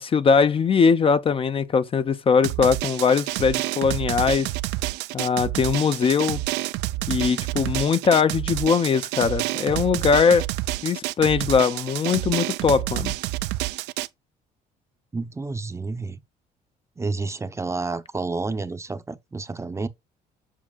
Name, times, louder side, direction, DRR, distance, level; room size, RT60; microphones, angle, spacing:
voice 1, 0.0-4.5 5.1-6.4 7.1-10.5 10.8-13.1, left 6 dB, 35° left, 0.5 m, -21 dB
Drum, 2.4-14.1, right 18 dB, 85° right, 0.4 m, -28 dB
voice 2, 15.1-16.2 17.0-19.9, right 3 dB, 15° right, 0.6 m, -30 dB
7.4 x 6.4 x 2.3 m
cardioid pair, 110°, 17 cm